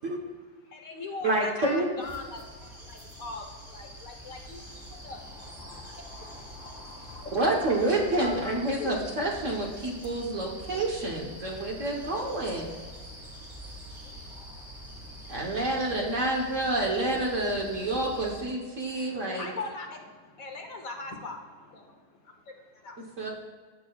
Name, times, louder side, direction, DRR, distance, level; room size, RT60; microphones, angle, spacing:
voice 1, 0.7-4.7 5.0-5.2 6.6-7.4 8.2-8.3 8.8-8.9 11.6-11.7 12.0-12.1 13.0-14.2 14.7-15.6 19.0-20.0 20.4-21.4 21.7-21.9 22.2-23.0, left 3 dB, 55° left, 3 dB, 1.3 m, -41 dB
voice 2, 1.2-1.9 7.3-12.7 15.3-19.5 23.2-23.3, right 2 dB, 45° right, -1 dB, 1.3 m, -28 dB
sound 1, 2.0-18.4, equal, 15° right, 1.8 m, -45 dB
voice 3, 4.6-9.0 17.9-18.2 19.1-19.6 19.9-20.0 20.3-20.7 21.1-21.6, left 2 dB, 80° left, -1 dB, 2.2 m, -51 dB
16.5 x 6.3 x 2.4 m, 1.5 s
omnidirectional pair, 2.1 m